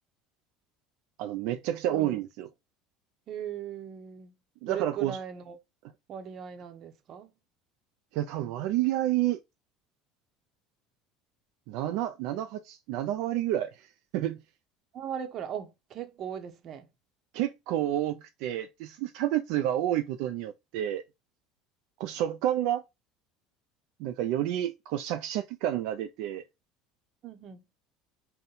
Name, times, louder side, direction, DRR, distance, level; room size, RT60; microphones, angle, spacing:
voice 1, 1.2-2.5 4.6-5.2 8.1-9.4 11.7-13.9 14.1-14.4 17.3-21.0 22.0-22.8 24.0-26.4, right 12 dB, 70° right, 0.3 m, -29 dB
voice 2, 1.9-2.2 3.3-4.3 4.7-5.6 6.1-7.3 14.9-16.9 27.2-27.6, right 9 dB, 45° right, 0.7 m, -38 dB
3.9 x 2.1 x 4.0 m
supercardioid pair, 120°, 0 cm